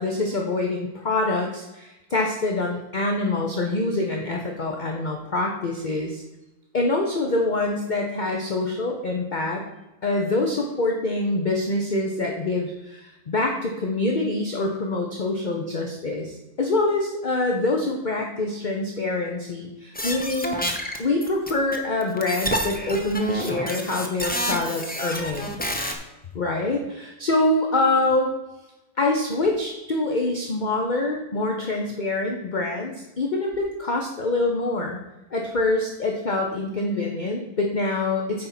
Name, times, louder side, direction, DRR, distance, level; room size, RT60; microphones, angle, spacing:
voice 1, 0.0-6.2 6.7-9.6 10.0-20.6 21.0-25.5 26.3-28.3 29.0-35.0 35.3-38.5, left 2 dB, 35° left, 1 dB, 0.9 m, -25 dB
sound 1, 19.9-21.8 22.0-25.9, equal, 10° left, 0.6 m, -29 dB
8.9 x 4.3 x 5.9 m, 1.0 s
omnidirectional pair, 1.6 m